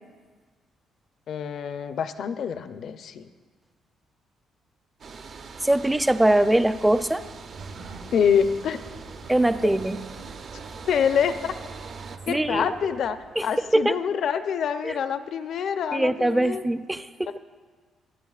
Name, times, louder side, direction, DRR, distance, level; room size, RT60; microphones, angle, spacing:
voice 1, 1.3-3.3 8.1-8.8 10.9-11.5 12.3-16.6, left 7 dB, 65° left, 11 dB, 0.5 m, -26 dB
sound 1, 5.0-12.2, right 5 dB, 55° right, 0.7 m, -42 dB
voice 2, 5.6-7.2 9.3-10.0 12.3-12.7 13.4-13.5 13.7-14.0 14.8-14.9 15.9-17.3, right 1 dB, 10° right, 12 dB, 0.4 m, -22 dB
Sliding door, 6.7-13.9, right 4 dB, 75° right, 1.4 m, -45 dB
24.5 x 8.4 x 2.4 m, 1.5 s
cardioid pair, 90°, 0 cm